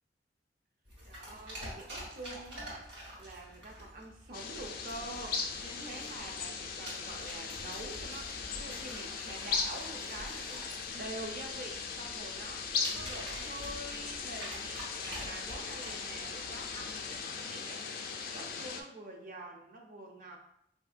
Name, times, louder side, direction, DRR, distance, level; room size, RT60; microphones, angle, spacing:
sound 1, 0.8-17.2, equal, 70° right, 1.5 m, -48 dB
voice 1, 1.0-20.4, right 2 dB, 50° right, 1 dB, 0.6 m, -46 dB
sound 2, 4.3-18.8, left 5 dB, 55° left, 0.4 m, -39 dB
4.1 x 2.7 x 2.4 m, 0.73 s
head